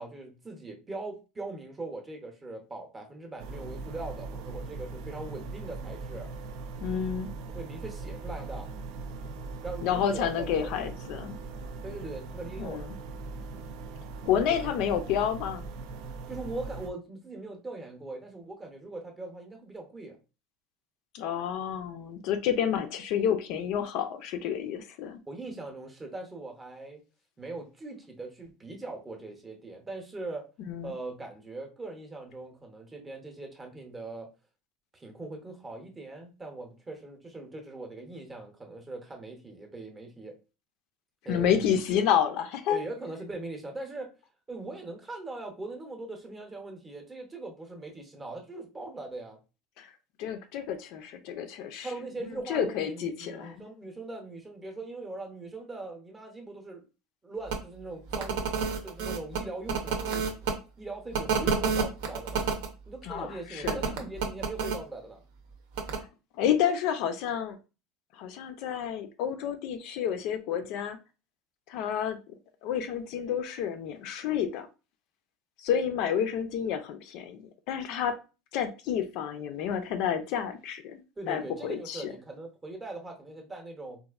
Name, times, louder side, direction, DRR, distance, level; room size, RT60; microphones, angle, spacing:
voice 1, 0.0-6.3 7.5-8.7 9.6-10.9 11.8-12.9 14.5-14.7 16.3-20.2 25.3-27.0 27.4-30.4 30.8-34.3 34.9-40.4 41.2-41.8 42.7-44.1 44.5-49.4 51.8-56.8 57.2-58.5 58.8-60.5 60.8-62.5 62.9-65.2 81.2-84.0, right 2 dB, 15° right, 0.7 m, -41 dB
sound 1, 3.4-16.9, right 3 dB, 60° right, 0.5 m, -40 dB
voice 2, 6.8-7.3 9.8-11.4 12.6-12.9 14.3-15.7 21.1-25.2 30.7-30.9 41.3-42.8 49.8-49.9 50.2-51.9 52.5-53.6 63.0-63.9 66.4-67.6 68.2-71.0 71.7-72.2 72.6-74.7 75.6-78.2 78.5-82.1, left 9 dB, 55° left, 0.4 m, -30 dB
sound 2, 57.5-57.6 58.1-60.5 61.1-62.7 63.6-64.8 65.7-66.0, right 5 dB, 75° right, 0.8 m, -29 dB
4.1 x 2.5 x 2.4 m
cardioid pair, 155°, 0 cm